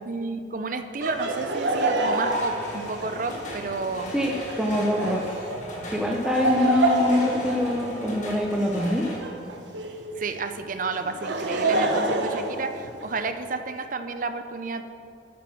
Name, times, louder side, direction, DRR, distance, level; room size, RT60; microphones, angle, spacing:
voice 1, 0.1-4.1 10.2-14.9, right 3 dB, 45° right, 8 dB, 0.7 m, -31 dB
Laughter, 1.0-10.1 10.9-13.3, right 2 dB, 80° right, 1.1 m, -28 dB
sound 1, 2.2-9.2, left 1 dB, 40° left, 2.3 m, -39 dB
voice 2, 4.1-5.2 5.9-9.1, left 1 dB, 5° right, -2 dB, 0.7 m, -24 dB
9.4 x 8.9 x 6.3 m, 2.5 s
head